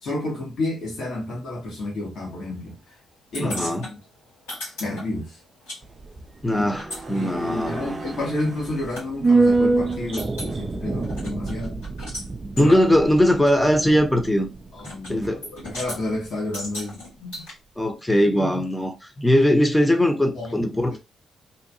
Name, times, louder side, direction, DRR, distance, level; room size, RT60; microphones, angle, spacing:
voice 1, 0.0-2.8 3.3-4.0 4.8-5.4 6.5-6.6 7.1-11.8 12.6-12.8 14.7-17.4 20.3-21.0, left 2 dB, 65° left, 1.3 m, -30 dB
sound 1, 3.3-5.8 6.1-9.1 9.5-9.6 9.9-10.5 11.0-12.3 12.6-12.7 13.5-13.6 14.8-15.1 15.4-16.0 16.5-17.5, left 1 dB, 85° left, 1.6 m, -37 dB
voice 2, 3.4-3.8 6.4-8.0 12.6-14.5 15.1-15.4 17.8-21.0, equal, 10° left, 0.9 m, -20 dB
sound 2, 5.8-16.3 16.6-16.7, right 3 dB, 35° right, 0.4 m, -27 dB
2.8 x 2.5 x 2.7 m
hypercardioid pair, 40°, 0 cm